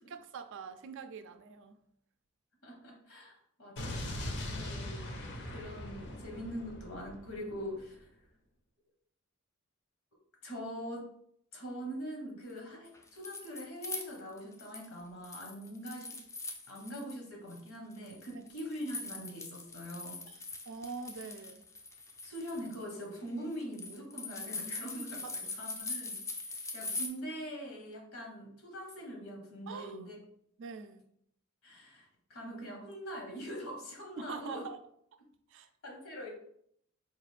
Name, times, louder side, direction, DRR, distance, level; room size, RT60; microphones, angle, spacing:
voice 1, 0.1-1.8 18.3-18.4 20.3-20.4 20.7-21.6 25.2-25.3 29.7-30.0 30.6-31.0 34.2-34.8 35.5-35.7, right 5 dB, 60° right, 9 dB, 0.4 m, -44 dB
voice 2, 2.6-8.1 10.4-11.1 11.5-16.1 16.7-20.2 22.2-26.2 26.4-30.2 31.6-34.7 35.8-36.3, equal, 70° left, 0 dB, 1.0 m, -43 dB
Explosion, 3.8-7.8, left 1 dB, 55° left, 0.6 m, -41 dB
sound 1, 12.8-14.9 15.2-17.2 17.5-27.1, left 3 dB, 15° left, 0.3 m, -42 dB
4.6 x 2.4 x 3.2 m, 0.70 s
head